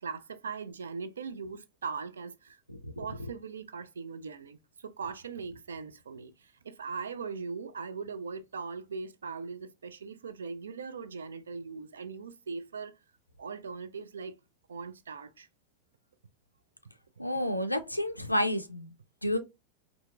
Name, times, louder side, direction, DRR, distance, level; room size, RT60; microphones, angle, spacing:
voice 1, 0.0-2.6 3.0-13.0 13.4-14.4 14.7-15.5 17.2-17.4, right 5 dB, 70° right, 0.4 m, -40 dB
voice 2, 17.2-18.9 19.2-19.4, left 1 dB, 90° left, 0.3 m, -30 dB
4.3 x 2.7 x 2.3 m
figure-of-eight pair, 90°, 0 cm